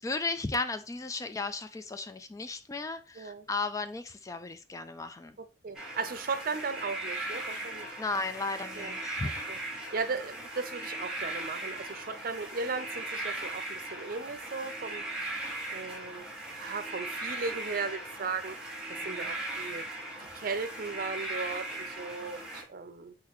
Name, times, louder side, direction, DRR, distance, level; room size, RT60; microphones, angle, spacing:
voice 1, 0.0-5.4 8.0-9.3 19.0-19.2, left 3 dB, 20° left, 0.3 m, -35 dB
voice 2, 3.2-3.5 5.4-7.9 8.8-8.9 9.2-15.0 15.7-18.8 19.0-19.9 20.3-23.1, right 4 dB, 55° right, 0.6 m, -37 dB
sound 1, 5.7-22.6, right 2 dB, 5° right, 1.6 m, -38 dB
4.4 x 3.9 x 3.0 m
head